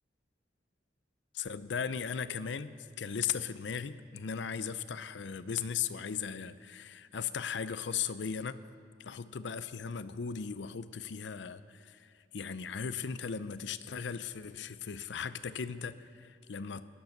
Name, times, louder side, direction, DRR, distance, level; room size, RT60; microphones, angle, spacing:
voice 1, 1.3-8.6 9.0-16.9, left 7 dB, 75° left, 14 dB, 0.5 m, -37 dB
17.0 x 11.0 x 5.9 m, 2.3 s
head